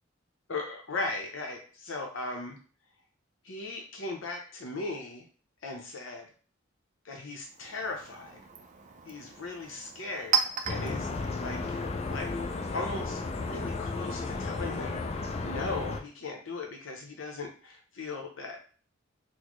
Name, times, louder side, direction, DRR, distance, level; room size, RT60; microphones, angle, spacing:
voice 1, 0.5-2.6 3.4-5.3 5.6-6.3 7.0-8.4 9.0-10.4 10.6-11.6 12.1-12.3 12.7-18.6, left 3 dB, 70° left, 2 dB, 0.7 m, -38 dB
Chink clink, 7.4-12.9, right 7 dB, 35° right, 0.4 m, -36 dB
sound 1, 10.7-16.0, left 3 dB, 30° left, 0.4 m, -34 dB
4.1 x 2.1 x 3.0 m, 0.40 s
head